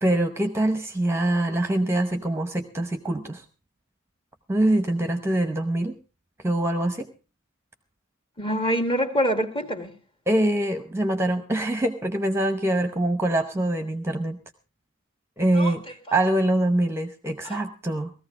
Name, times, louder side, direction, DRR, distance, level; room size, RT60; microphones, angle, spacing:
voice 1, 0.0-3.4 4.5-5.9 6.4-7.1 10.3-14.4 15.4-15.8 16.1-18.1, right 1 dB, 10° right, 8 dB, 0.8 m, -24 dB
voice 2, 8.4-9.9 15.5-15.7 16.1-16.2 17.4-17.6, equal, 25° left, 7 dB, 1.6 m, -25 dB
17.5 x 14.5 x 3.6 m, 0.31 s
head